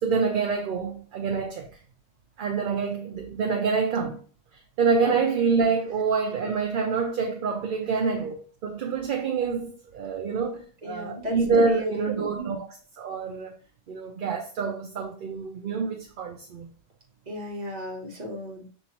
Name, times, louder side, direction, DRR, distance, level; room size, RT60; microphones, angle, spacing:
voice 1, 0.0-1.7 2.4-4.2 4.8-12.7 13.0-13.6 13.9-16.7, right 5 dB, 60° right, 0.7 m, -26 dB
voice 2, 10.8-12.5 17.3-18.7, left 1 dB, 40° right, 1.2 m, -34 dB
6.0 x 2.7 x 2.8 m
omnidirectional pair, 1.1 m